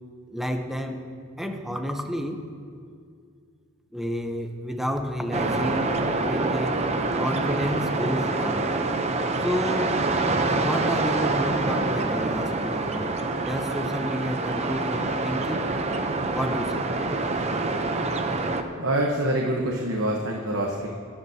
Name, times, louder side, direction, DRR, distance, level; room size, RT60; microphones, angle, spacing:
voice 1, 0.3-1.0 1.4-2.5 3.9-6.9 7.2-8.7 9.4-10.1 10.5-15.7 16.3-16.9, equal, ahead, 4 dB, 0.8 m, -30 dB
sound 1, 5.3-18.6, right 2 dB, 30° right, 0.7 m, -26 dB
voice 2, 18.8-20.9, right 1 dB, 70° right, -1 dB, 1.1 m, -25 dB
22.5 x 10.0 x 2.8 m, 2.2 s
head